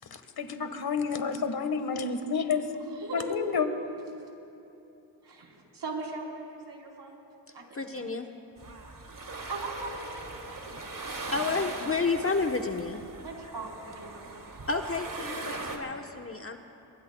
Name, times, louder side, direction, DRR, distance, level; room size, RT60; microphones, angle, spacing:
voice 1, 0.1-2.7 3.1-3.7, left 5 dB, 55° left, 8 dB, 1.6 m, -30 dB
voice 2, 3.0-3.4 5.7-7.2 7.5-8.1 9.5-10.8 13.2-14.2, right 2 dB, 60° right, -1 dB, 4.3 m, -39 dB
voice 3, 7.7-8.3 11.3-13.0 14.7-16.6, left 4 dB, 30° left, 4 dB, 1.1 m, -30 dB
sound 1, 8.6-15.8, right 3 dB, 45° right, 2.7 m, -40 dB
25.0 x 22.5 x 2.3 m, 2.9 s
supercardioid pair, 45°, 45 cm